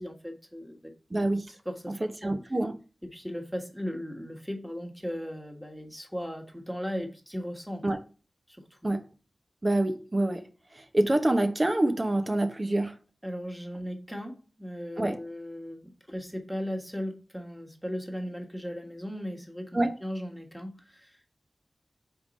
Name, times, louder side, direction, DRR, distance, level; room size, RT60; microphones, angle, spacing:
voice 1, 0.0-0.9 1.6-2.3 3.0-7.9 8.5-8.9 13.2-21.2, equal, ahead, 1.6 m, -37 dB
voice 2, 1.1-1.5 2.0-2.8 7.8-8.0 8.8-9.0 9.6-10.5 10.7-13.0 15.0-15.2 19.7-19.9, right 1 dB, 35° right, 0.9 m, -26 dB
4.7 x 3.7 x 5.4 m
cardioid pair, 40°, 0 cm